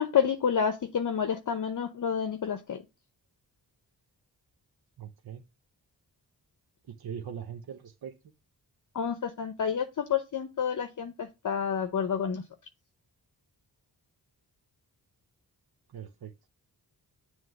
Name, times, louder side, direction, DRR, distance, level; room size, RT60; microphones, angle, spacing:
voice 1, 0.0-2.8 8.9-12.4, left 7 dB, 50° left, 0.8 m, -29 dB
voice 2, 5.0-5.4 6.9-8.1 15.9-16.3, right 8 dB, 65° right, 0.9 m, -41 dB
7.5 x 3.2 x 6.3 m
wide cardioid pair, 85°, 40 cm